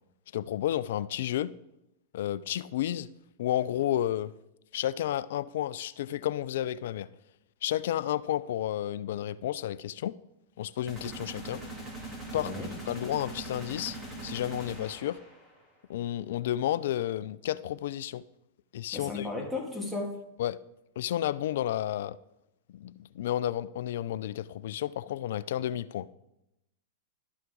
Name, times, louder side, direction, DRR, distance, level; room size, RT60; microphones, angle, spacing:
voice 1, 0.3-1.5 2.1-3.1 3.4-4.3 4.7-7.1 7.6-10.1 10.6-11.6 12.3-14.0 14.2-15.2 15.9-18.2 18.7-19.3 20.4-20.6 21.0-22.2 22.7-26.1, left 12 dB, 70° left, 0.3 m, -31 dB
sound 1, 10.9-15.6, right 2 dB, 20° right, 2.7 m, -41 dB
voice 2, 12.3-12.7 18.9-20.2, left 3 dB, ahead, 2.3 m, -35 dB
12.0 x 5.8 x 3.8 m
hypercardioid pair, 110°, 0 cm